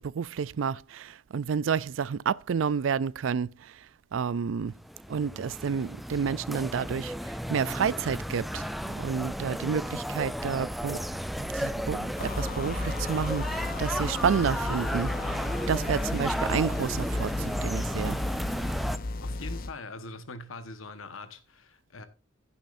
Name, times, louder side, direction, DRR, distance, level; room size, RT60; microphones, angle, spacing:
voice 1, 0.0-3.8 4.1-4.7 5.1-11.0 11.4-18.2, right 6 dB, 70° right, 0.4 m, -30 dB
sound 1, 4.8-19.0, equal, ahead, 0.4 m, -33 dB
sound 2, 12.2-19.7, left 2 dB, 45° left, 0.6 m, -34 dB
voice 2, 19.2-22.1, left 2 dB, 85° left, 1.3 m, -42 dB
15.5 x 7.3 x 2.6 m
head